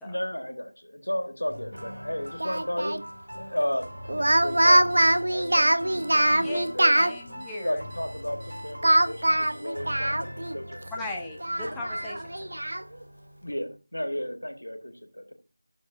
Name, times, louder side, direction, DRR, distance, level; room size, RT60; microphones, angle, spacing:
voice 1, 0.0-3.0 3.3-7.2 7.6-10.8 13.4-15.3, equal, 75° left, 6 dB, 1.6 m, -33 dB
sound 1, 1.5-13.8, equal, 85° right, 4.5 m, -42 dB
Speech, 2.4-3.0 4.1-7.1 8.8-10.6 10.9-11.0 11.4-12.8, right 1 dB, 55° right, 0.7 m, -23 dB
Alarm, 4.4-10.1, right 1 dB, 20° right, 2.3 m, -52 dB
voice 2, 7.0-7.8 10.9-12.6, left 2 dB, 5° left, -4 dB, 0.7 m, -37 dB
11.5 x 6.5 x 2.6 m, 0.32 s
figure-of-eight pair, 170°, 0 cm